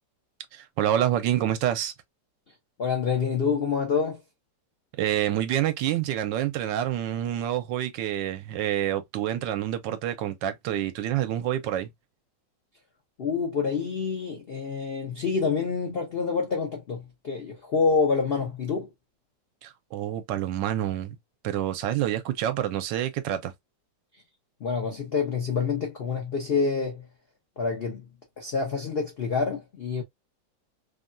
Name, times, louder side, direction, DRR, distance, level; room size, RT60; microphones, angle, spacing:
voice 1, 0.5-1.9 5.0-11.9 19.6-21.2 21.4-23.5, right 11 dB, 80° right, 1.3 m, -27 dB
voice 2, 2.8-4.2 13.2-18.9 24.6-27.1 27.6-28.1 28.4-30.0, left 5 dB, 75° left, 0.5 m, -27 dB
3.4 x 2.2 x 2.4 m
omnidirectional pair, 2.0 m